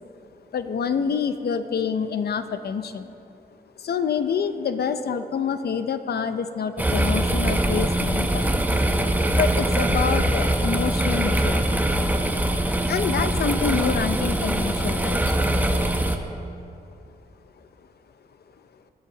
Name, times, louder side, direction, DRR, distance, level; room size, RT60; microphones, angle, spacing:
voice 1, 0.5-3.2 3.8-8.5 9.3-11.8 12.9-15.4, left 6 dB, 80° left, 10 dB, 0.7 m, -27 dB
sound 1, 6.8-16.2, right 1 dB, 10° right, 0.8 m, -22 dB
20.5 x 11.0 x 4.0 m, 2.7 s
wide cardioid pair, 160°, 16 cm